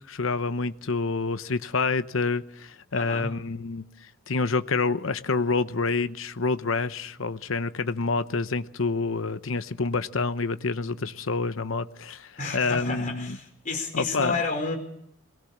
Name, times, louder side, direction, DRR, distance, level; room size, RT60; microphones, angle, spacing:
voice 1, 0.1-3.8 4.3-13.4 13.9-14.4, left 4 dB, 80° left, 0.9 m, -27 dB
voice 2, 2.9-3.3 12.4-14.8, left 3 dB, 40° left, 4.9 m, -31 dB
23.5 x 18.5 x 7.4 m
head